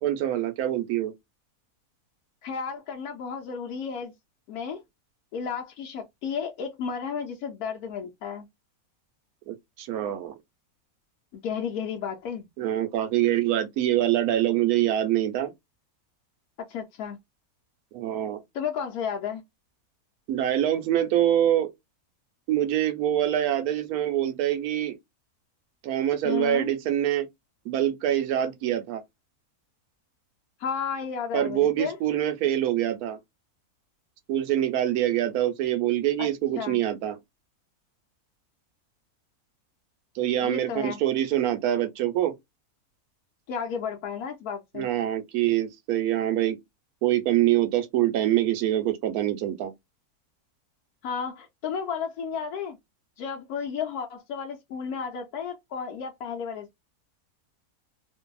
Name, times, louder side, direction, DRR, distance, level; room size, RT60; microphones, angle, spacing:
voice 1, 0.0-1.1 9.5-10.3 12.6-15.5 17.9-18.4 20.3-21.7 22.5-25.0 25.8-27.3 27.7-29.0 31.3-33.2 34.3-37.2 40.2-42.3 44.7-46.6 47.0-49.7, right 12 dB, 75° right, 1.1 m, -25 dB
voice 2, 2.4-4.1 4.5-4.8 5.3-8.5 11.3-12.5 16.7-17.2 18.5-19.4 26.2-26.7 30.6-32.0 36.2-36.3 36.6-36.8 40.4-41.0 43.5-44.9 51.0-52.8 53.2-56.8, left 6 dB, 85° left, 1.1 m, -33 dB
2.6 x 2.6 x 2.2 m
omnidirectional pair, 1.6 m